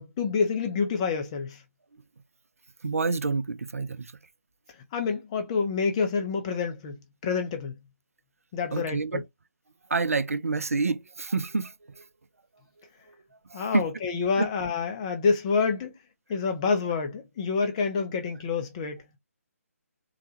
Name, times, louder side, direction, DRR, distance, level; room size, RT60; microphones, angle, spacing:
voice 1, 0.0-1.6 4.9-7.7 8.5-9.2 13.5-15.9 16.3-19.0, left 5 dB, 25° left, 0.6 m, -27 dB
voice 2, 2.8-4.1 8.7-9.2 9.9-11.7 13.5-13.9 14.4-14.5, right 4 dB, 65° right, 0.5 m, -28 dB
3.8 x 2.2 x 3.0 m
figure-of-eight pair, 140°, 8 cm